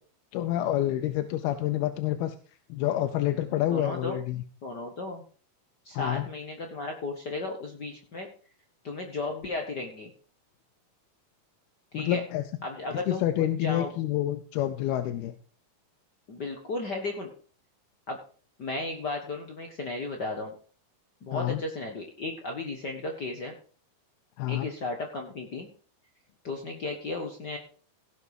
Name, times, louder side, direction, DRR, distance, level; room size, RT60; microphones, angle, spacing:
voice 1, 0.3-2.4 2.7-4.4 5.9-6.3 11.9-12.4 12.9-15.3 21.3-21.6 24.4-24.7, left 13 dB, 90° left, 8 dB, 2.7 m, -28 dB
voice 2, 3.7-4.2 4.6-5.2 5.8-8.3 8.8-10.1 11.9-12.2 12.6-13.9 16.3-17.3 18.1-18.2 18.6-20.5 21.2-23.5 24.5-25.7 26.4-27.6, left 2 dB, 70° left, 3 dB, 0.9 m, -34 dB
16.5 x 7.2 x 4.8 m, 0.41 s
omnidirectional pair, 4.3 m